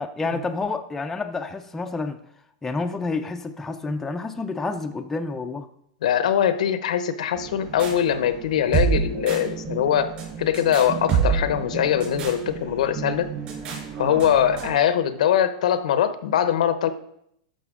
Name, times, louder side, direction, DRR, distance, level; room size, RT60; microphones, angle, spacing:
voice 1, 0.0-2.2 2.6-5.7, left 3 dB, 10° left, 5 dB, 0.5 m, -29 dB
voice 2, 6.0-10.1 10.4-13.3 14.0-16.9, left 9 dB, 80° left, 12 dB, 0.8 m, -22 dB
sound 1, 7.3-14.8, right 6 dB, 35° right, 3.8 m, -28 dB
13.0 x 5.6 x 3.7 m, 0.73 s
supercardioid pair, 150°, 4 cm